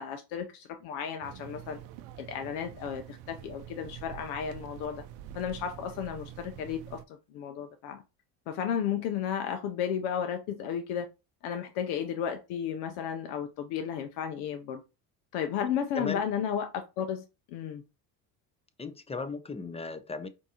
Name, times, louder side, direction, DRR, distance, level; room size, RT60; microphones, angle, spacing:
voice 1, 0.0-1.8 2.2-5.0 5.3-8.0 8.5-11.1 11.4-14.8 15.3-17.8, left 8 dB, 80° left, 0.6 m, -33 dB
sound 1, 1.2-7.0, right 11 dB, 80° right, 0.6 m, -46 dB
voice 2, 18.8-20.3, left 4 dB, 15° left, 0.5 m, -36 dB
4.4 x 2.7 x 2.8 m
supercardioid pair, 75°, 45 cm